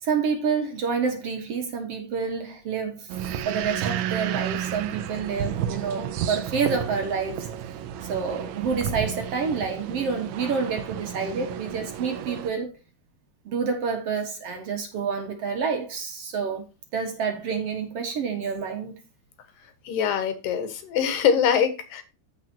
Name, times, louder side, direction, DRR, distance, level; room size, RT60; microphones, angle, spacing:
voice 1, 0.0-3.1 3.5-7.5 8.0-12.7 13.5-16.6 16.9-18.9, right 5 dB, 55° right, 2.1 m, -28 dB
sound 1, 3.1-12.5, right 9 dB, 75° right, 1.9 m, -32 dB
voice 2, 19.8-22.0, left 7 dB, 90° left, 3.1 m, -23 dB
14.5 x 5.0 x 2.8 m
omnidirectional pair, 3.8 m